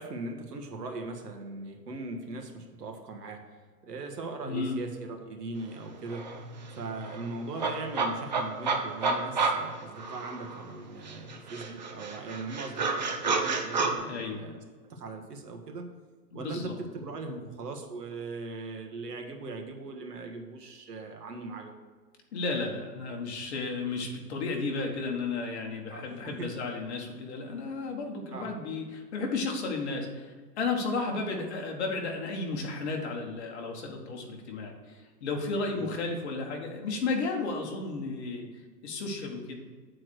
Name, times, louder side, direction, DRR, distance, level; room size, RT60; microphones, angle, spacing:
voice 1, 0.0-6.3 6.7-15.9 16.3-21.7 25.9-26.5 28.3-28.5 35.8-36.0, right 3 dB, 75° right, 4 dB, 1.6 m, -40 dB
voice 2, 4.4-4.8 14.0-14.4 16.3-16.7 17.3-17.4 22.3-38.5 38.8-39.6, left 3 dB, 40° left, 1 dB, 1.5 m, -33 dB
sound 1, 5.7-5.8 6.1-10.7 11.0-13.9, right 4 dB, 30° right, 0.5 m, -31 dB
7.9 x 4.4 x 6.3 m, 1.4 s
hypercardioid pair, 155°, 49 cm